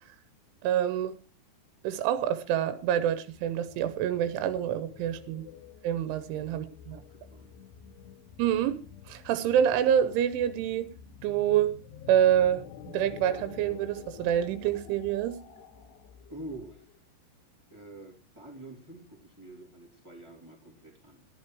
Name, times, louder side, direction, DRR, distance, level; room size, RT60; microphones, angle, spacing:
voice 1, 0.6-1.1 1.8-5.4 5.8-7.0 8.4-8.8 9.1-10.9 11.2-11.7 12.1-15.4, right 10 dB, 85° right, 11 dB, 3.3 m, -27 dB
sound 1, 2.8-17.0, left 8 dB, 70° left, 3.2 m, -49 dB
voice 2, 6.0-7.6 16.3-16.9 17.7-21.2, right 1 dB, 15° right, 1 dB, 1.1 m, -47 dB
14.5 x 11.0 x 4.6 m, 0.37 s
omnidirectional pair, 5.4 m